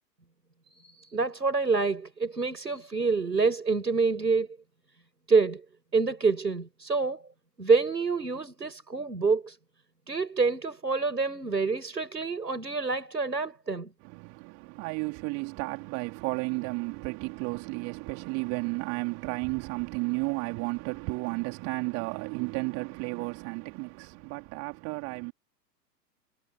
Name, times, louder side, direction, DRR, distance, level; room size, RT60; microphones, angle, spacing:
voice 1, 0.8-4.5 5.3-5.6 5.9-7.2 7.6-9.6 10.1-13.9, right 4 dB, 80° right, 6.0 m, -27 dB
voice 2, 14.0-25.3, right 30 dB, 30° right, 3.6 m, -33 dB
figure-of-eight pair, 110°, 49 cm